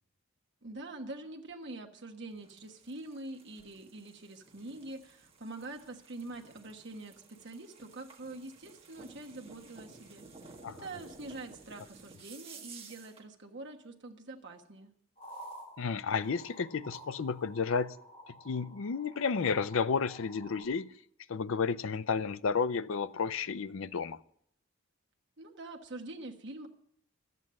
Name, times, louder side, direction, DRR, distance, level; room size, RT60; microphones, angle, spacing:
voice 1, 0.6-14.9 25.4-26.7, right 2 dB, 55° right, 1.3 m, -45 dB
sound 1, 2.3-13.3, right 4 dB, 25° right, 1.6 m, -54 dB
sound 2, 15.2-20.6, equal, 30° left, 2.3 m, -51 dB
voice 2, 15.8-18.0 18.3-20.9 21.3-24.2, left 5 dB, 65° left, 0.5 m, -32 dB
12.5 x 8.3 x 7.4 m
head